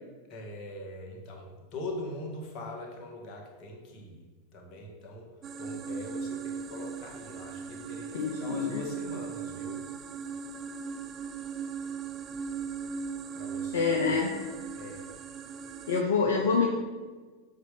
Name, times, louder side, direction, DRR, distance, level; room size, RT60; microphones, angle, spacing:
voice 1, 0.3-4.2 4.5-5.3 5.6-9.8 13.3-14.4 14.8-15.1, left 1 dB, 40° left, 0 dB, 1.9 m, -42 dB
sound 1, 5.4-16.0, right 6 dB, 30° right, 0.5 m, -38 dB
voice 2, 8.1-8.8 13.7-14.3 15.9-16.7, left 5 dB, 60° left, 0 dB, 0.8 m, -26 dB
7.4 x 4.8 x 5.6 m, 1.3 s
figure-of-eight pair, 85°, 0 cm